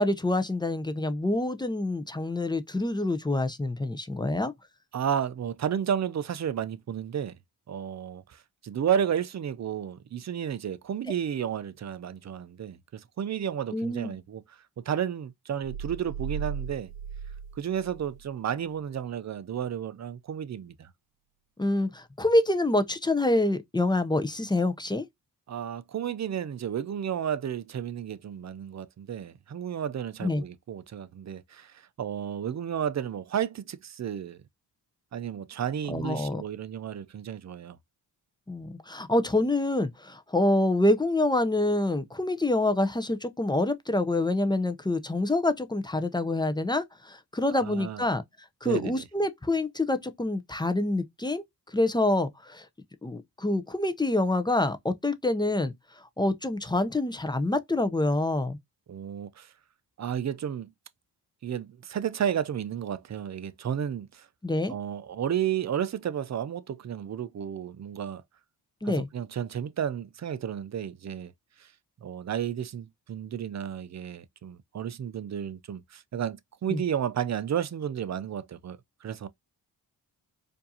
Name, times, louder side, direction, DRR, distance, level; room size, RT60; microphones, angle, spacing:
voice 1, 0.0-4.5 13.7-14.1 21.6-25.1 30.2-30.4 35.9-36.4 38.5-48.2 48.6-51.4 51.7-52.7 53.0-55.7 56.2-58.6 64.4-64.7 68.8-69.1 76.7-76.8, left 2 dB, 10° left, 0.5 m, -26 dB
voice 2, 4.9-7.3 7.7-16.9 17.5-20.9 25.5-34.4 35.1-37.8 47.5-48.1 48.6-49.0 58.9-59.5 60.0-60.7 61.4-64.3 64.7-68.2 68.8-71.3 71.6-71.7 72.0-79.3, right 9 dB, 40° right, 0.5 m, -32 dB
sound 1, 15.6-18.3, right 7 dB, 80° right, 0.7 m, -37 dB
4.4 x 2.7 x 2.7 m
cardioid pair, 65°, 43 cm